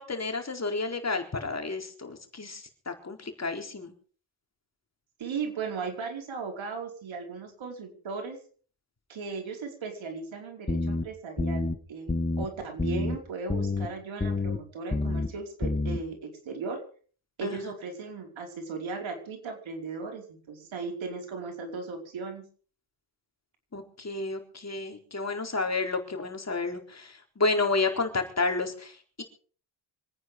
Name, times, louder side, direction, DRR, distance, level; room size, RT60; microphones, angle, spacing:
voice 1, 0.0-3.9 17.4-17.7 23.7-29.2, left 3 dB, 35° left, 4 dB, 4.2 m, -31 dB
voice 2, 5.2-8.4 9.1-16.8 17.4-22.4, right 4 dB, 75° right, 3 dB, 5.0 m, -37 dB
sound 1, 10.7-11.0 11.4-11.7 12.1-12.4 12.8-13.2 13.5-13.9 14.2-14.6 14.9-15.3 15.6-16.0, left 2 dB, 20° left, 1.9 m, -28 dB
26.0 x 9.6 x 5.2 m, 0.43 s
cardioid pair, 75°, 46 cm